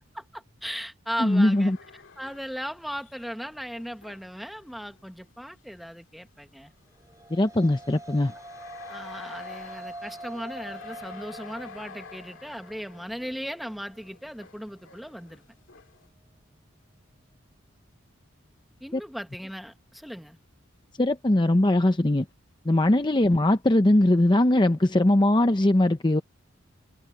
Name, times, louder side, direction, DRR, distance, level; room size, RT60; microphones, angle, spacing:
voice 1, 0.1-1.7 2.2-6.7 8.9-15.4 18.8-20.4, equal, ahead, 1.4 m, -37 dB
sound 1, 1.2-5.3 5.8-5.9 6.8-16.1, left 5 dB, 65° left, 2.5 m, -49 dB
voice 2, 1.2-1.8 7.3-8.3 18.9-19.0 21.0-22.3 22.6-26.2, left 1 dB, 20° left, 0.7 m, -21 dB
sound 2, 6.9-15.4, right 2 dB, 15° right, 3.6 m, -45 dB
head